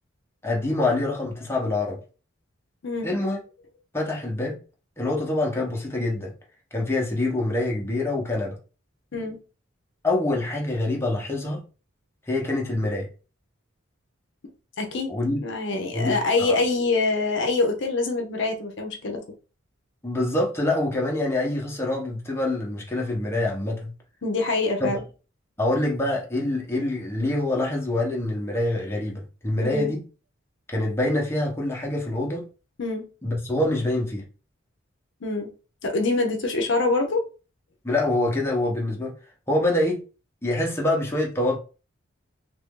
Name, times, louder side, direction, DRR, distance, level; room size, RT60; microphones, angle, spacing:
voice 1, 0.4-2.0 3.0-3.4 3.9-4.6 5.0-6.3 6.7-8.6 10.0-11.6 12.3-13.1 15.1-15.4 15.9-16.6 20.0-23.9 24.8-25.0 25.6-30.0 30.7-32.5 33.2-34.2 37.8-39.1 39.5-40.0 40.4-41.6, left 2 dB, 10° left, 0.9 m, -25 dB
voice 2, 14.8-15.1 15.4-19.2 24.2-25.0 29.6-29.9 32.8-33.1 35.2-35.5 35.8-37.3, left 3 dB, 65° left, 0.6 m, -25 dB
3.0 x 2.6 x 3.6 m
head